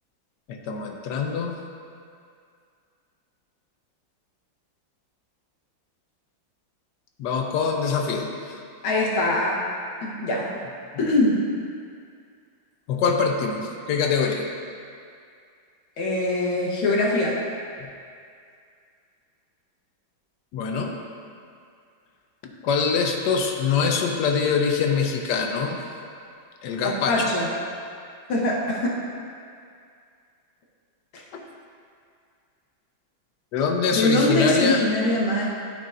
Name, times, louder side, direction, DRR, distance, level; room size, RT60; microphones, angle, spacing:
voice 1, 0.5-1.6 7.2-8.5 12.9-14.5 17.8-17.9 20.5-21.0 22.4-25.8 26.6-27.3 31.3-31.4 33.5-34.8, left 5 dB, 70° left, 2 dB, 1.1 m, -24 dB
voice 2, 8.8-9.6 10.0-10.6 11.0-11.4 16.0-17.4 26.8-27.5 28.3-29.0 33.9-35.4, left 1 dB, 90° left, -4 dB, 1.9 m, -22 dB
12.0 x 5.5 x 2.5 m, 2.3 s
omnidirectional pair, 2.2 m